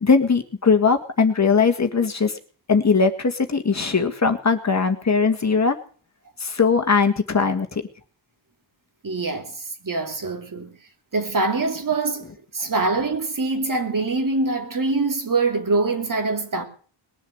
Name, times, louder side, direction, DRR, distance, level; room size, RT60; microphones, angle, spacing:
voice 1, 0.0-2.3 2.7-5.8 6.4-7.8, left 5 dB, 35° left, 1.9 m, -20 dB
voice 2, 9.0-10.8 11.1-12.3 12.5-16.6, right 3 dB, 45° right, 3.0 m, -24 dB
21.0 x 7.4 x 7.9 m
wide cardioid pair, 125°, 45 cm